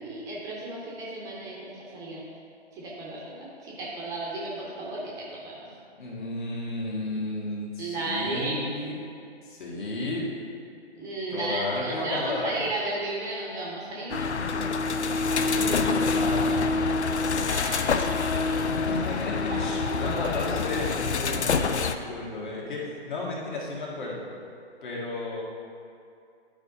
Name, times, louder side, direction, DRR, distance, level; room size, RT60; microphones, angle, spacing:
voice 1, 0.0-2.2 2.7-5.6 7.8-8.6 10.9-14.3 17.4-18.8 19.5-20.1, right 2 dB, 10° right, -5 dB, 0.7 m, -34 dB
voice 2, 6.0-9.0 9.4-10.3 11.3-12.6 14.4-14.7 15.4-16.9 18.7-24.3 24.8-25.4, left 2 dB, 45° left, -3 dB, 1.7 m, -33 dB
sound 1, 14.1-22.0, left 4 dB, 85° left, 0.5 m, -26 dB
11.0 x 5.0 x 2.7 m, 2.4 s
figure-of-eight pair, 140°, 33 cm